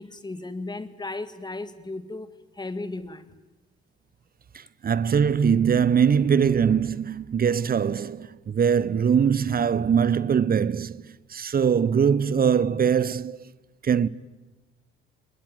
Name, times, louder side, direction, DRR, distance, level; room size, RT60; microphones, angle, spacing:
voice 1, 0.0-2.3 2.6-3.4, left 2 dB, 15° left, 2.0 m, -35 dB
voice 2, 4.5-11.1 11.3-13.4 13.8-14.1, right 7 dB, 30° right, 0.9 m, -22 dB
26.5 x 20.5 x 9.4 m
figure-of-eight pair, 50°, 30 cm